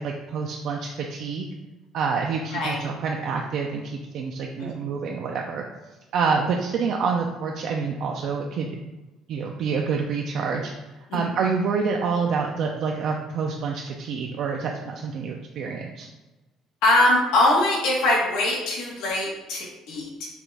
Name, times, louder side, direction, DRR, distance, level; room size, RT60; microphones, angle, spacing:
voice 1, 0.0-1.5 1.9-5.6 6.1-8.8 9.3-16.1, right 5 dB, 50° right, 1 dB, 0.3 m, -27 dB
voice 2, 16.8-20.3, left 1 dB, 85° left, -2 dB, 1.3 m, -22 dB
5.8 x 2.4 x 3.3 m, 1.1 s
cardioid pair, 170°, 0 cm